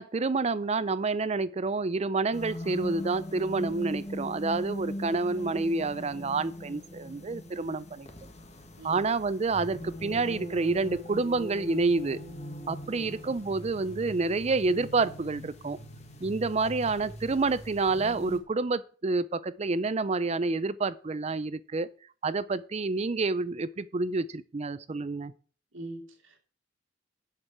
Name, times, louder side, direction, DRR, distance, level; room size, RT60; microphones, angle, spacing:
voice 1, 0.0-8.1 8.8-12.2 12.7-15.8 16.2-21.9 22.2-25.3, right 3 dB, 35° right, 0.5 m, -28 dB
sound 1, 2.3-18.4, equal, 35° left, 1.5 m, -41 dB
voice 2, 25.7-26.4, right 1 dB, 85° right, 2.4 m, -43 dB
7.8 x 6.7 x 7.3 m
head